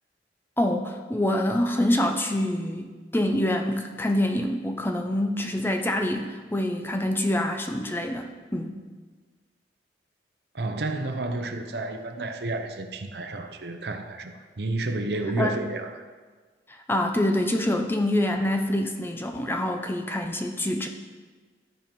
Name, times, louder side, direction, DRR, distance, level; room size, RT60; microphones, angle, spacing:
voice 1, 0.6-8.8 15.4-15.6 16.7-20.9, left 1 dB, 10° left, 4 dB, 0.5 m, -26 dB
voice 2, 10.5-15.9, right 2 dB, 65° right, 6 dB, 0.8 m, -31 dB
13.5 x 4.5 x 5.3 m, 1.4 s
head